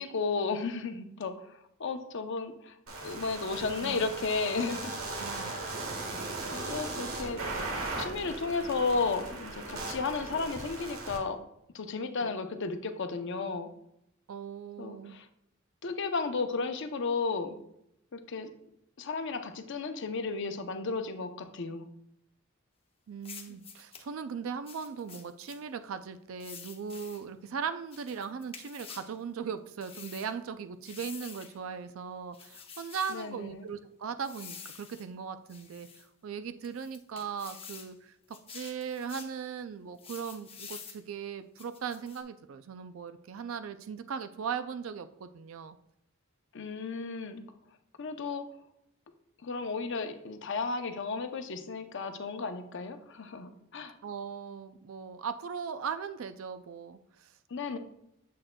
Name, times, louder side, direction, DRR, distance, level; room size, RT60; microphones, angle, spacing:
voice 1, 0.0-2.8 3.0-4.9 6.5-7.4 8.0-11.4 11.7-13.7 14.8-15.3 15.8-17.6 18.1-18.5 19.0-21.9 33.1-33.7 46.5-47.4 48.0-48.4 49.4-53.9 57.5-57.8, left 4 dB, 60° left, 8 dB, 0.7 m, -33 dB
sound 1, 2.9-11.2, right 2 dB, 85° right, 1.5 m, -38 dB
voice 2, 5.1-5.6 12.2-12.3 14.3-15.2 23.1-45.8 54.0-57.3, right 6 dB, 70° right, 10 dB, 0.4 m, -39 dB
sound 2, 23.2-24.1 24.7-25.6 26.4-27.2 27.9-29.1 29.8-30.3 30.8-31.6 32.3-33.2 34.2-35.1 35.5-36.1 36.6-37.9 38.3-39.3 40.0-41.0 41.6-42.2, left 6 dB, 30° left, 0.8 m, -48 dB
7.4 x 6.5 x 2.2 m, 0.78 s
head